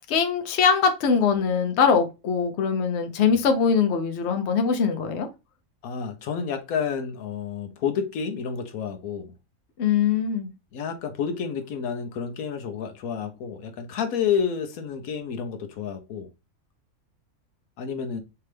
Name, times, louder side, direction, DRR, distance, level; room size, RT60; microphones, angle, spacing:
voice 1, 0.1-5.3 9.8-10.5, left 6 dB, 55° left, 0.9 m, -22 dB
voice 2, 5.8-9.3 10.7-16.3 17.8-18.2, left 7 dB, 80° left, 1.1 m, -30 dB
4.5 x 2.9 x 3.2 m
omnidirectional pair, 1.5 m